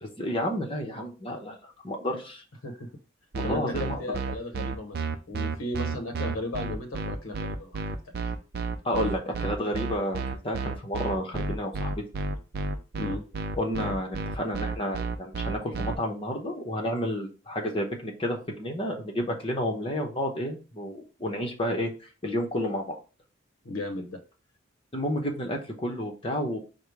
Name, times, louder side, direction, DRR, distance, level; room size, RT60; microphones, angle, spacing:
voice 1, 0.0-2.4 3.4-4.0 8.8-12.0 13.6-21.9 22.2-23.0 24.9-26.6, equal, 25° left, 2 dB, 0.9 m, -31 dB
sound 1, 3.3-15.9, right 4 dB, 50° right, 0.5 m, -31 dB
voice 2, 3.4-5.0 5.3-8.3 13.0-13.2 23.6-24.2, left 1 dB, 90° left, 4 dB, 0.8 m, -35 dB
4.9 x 2.2 x 4.8 m, 0.34 s
head